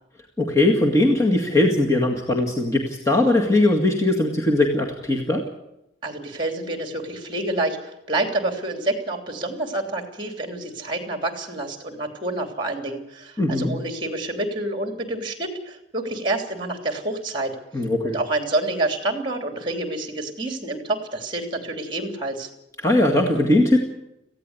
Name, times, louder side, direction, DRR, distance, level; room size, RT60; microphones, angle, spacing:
voice 1, 0.4-5.4 13.4-13.8 17.7-18.2 22.8-23.8, left 1 dB, 15° left, 0 dB, 2.0 m, -20 dB
voice 2, 6.0-17.6 18.0-22.5, right 2 dB, 25° right, 5 dB, 3.2 m, -28 dB
18.5 x 15.5 x 9.8 m, 0.86 s
head